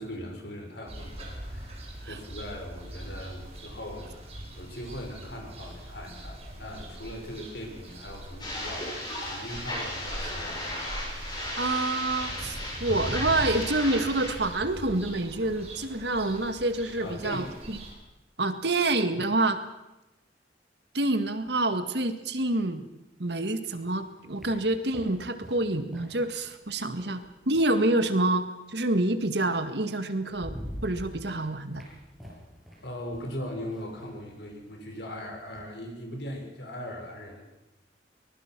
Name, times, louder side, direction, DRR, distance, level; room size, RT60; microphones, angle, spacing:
voice 1, 0.0-4.1 4.6-10.8 17.0-17.5 32.8-37.4, equal, 65° left, 2 dB, 5.8 m, -39 dB
sound 1, 0.9-17.9, right 1 dB, 35° right, 5.4 m, -41 dB
sound 2, 8.4-14.3, left 1 dB, 25° left, 7.4 m, -35 dB
voice 2, 11.6-17.8 18.4-19.6 20.9-22.8 23.2-30.5 30.8-31.9, right 2 dB, 65° right, 9 dB, 1.8 m, -27 dB
sound 3, 23.7-28.3 29.5-29.6 30.0-35.7, equal, ahead, 7.7 m, -46 dB
23.5 x 20.5 x 6.1 m, 0.97 s
head